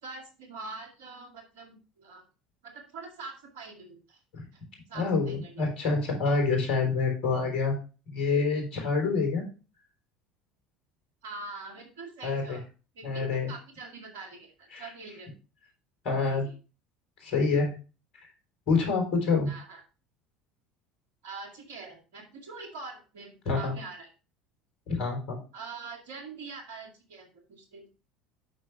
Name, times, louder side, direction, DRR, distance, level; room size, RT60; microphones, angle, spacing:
voice 1, 0.0-2.2 2.6-4.2 4.5-4.6 4.9-5.5 11.2-12.6 12.9-15.3 16.3-16.4 19.5-19.8 21.2-24.1 25.5-27.9, right 3 dB, 75° right, 3 dB, 2.2 m, -44 dB
voice 2, 4.9-7.8 8.1-9.5 12.2-12.6 13.0-13.5 14.7-14.9 16.0-16.5 17.2-17.7 18.7-19.5 23.5-23.7 24.9-25.4, left 4 dB, 60° left, 2 dB, 3.6 m, -27 dB
8.4 x 6.1 x 3.3 m, 0.33 s
hypercardioid pair, 70°, 0 cm